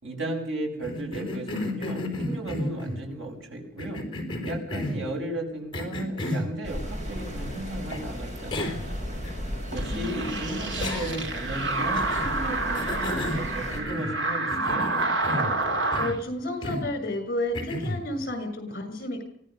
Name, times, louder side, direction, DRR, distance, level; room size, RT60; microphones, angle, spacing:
voice 1, 0.0-4.0 4.4-9.0 9.7-14.9, right 1 dB, 85° right, 1 dB, 7.0 m, -35 dB
Cough, 0.8-3.0 3.8-5.1 5.7-6.5 7.9-8.0 8.5-8.9 9.2-9.3 10.8-11.4 11.9-12.3 12.7-14.2 14.5-15.6 15.9-16.2 16.6-16.9 17.5-18.0, left 1 dB, 25° left, 4.4 m, -32 dB
sound 1, 6.6-13.8, equal, 40° right, 5.8 m, -35 dB
sound 2, 9.7-16.2, right 2 dB, 65° right, 2.6 m, -29 dB
voice 2, 9.9-10.4 15.9-19.2, left 1 dB, 50° left, 8 dB, 6.8 m, -31 dB
24.0 x 17.0 x 6.7 m, 0.67 s
head